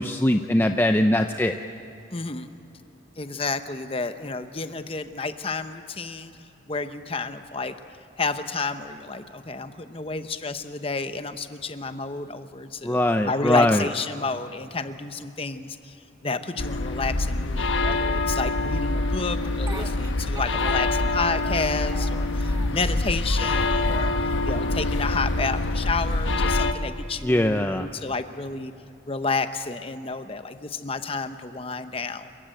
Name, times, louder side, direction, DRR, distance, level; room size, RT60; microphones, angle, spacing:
voice 1, 0.0-1.6 12.8-13.9 27.2-27.9, left 1 dB, 10° left, 6 dB, 0.5 m, -21 dB
voice 2, 2.1-2.5 3.2-7.7 8.2-16.0 16.2-28.7 29.1-32.3, left 4 dB, 30° left, 10 dB, 0.9 m, -31 dB
sound 1, 16.6-26.7, left 2 dB, 90° left, 1.1 m, -25 dB
Speech, 19.4-21.1 21.4-22.8 23.2-24.2 24.7-25.5, right 2 dB, 20° right, 1.4 m, -42 dB
28.0 x 15.5 x 9.2 m, 2.9 s
head